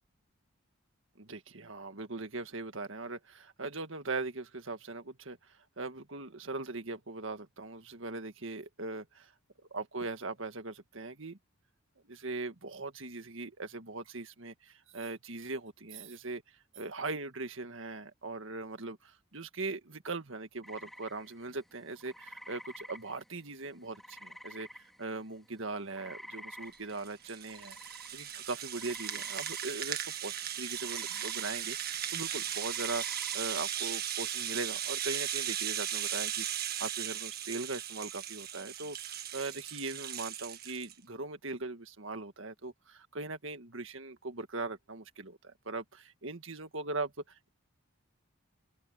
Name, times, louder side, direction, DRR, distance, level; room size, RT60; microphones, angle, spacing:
voice 1, 1.2-5.4 5.8-9.3 9.7-11.4 12.1-16.4 16.8-47.5, right 3 dB, 65° right, 1.9 m, -40 dB
sound 1, 20.6-25.3 25.6-33.5, equal, ahead, 3.8 m, -50 dB
Rattle (instrument), 26.7-40.9, right 10 dB, 45° right, 1.8 m, -37 dB
open air
head